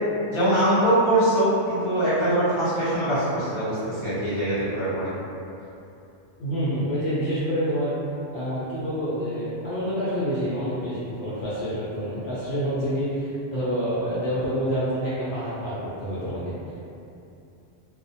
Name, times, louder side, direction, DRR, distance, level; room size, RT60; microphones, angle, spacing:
voice 1, 0.3-5.1, right 1 dB, 45° left, -12 dB, 0.4 m, -22 dB
voice 2, 6.4-7.9 8.3-16.5, equal, 65° left, -10 dB, 0.8 m, -27 dB
2.4 x 2.1 x 2.6 m, 2.7 s
omnidirectional pair, 1.2 m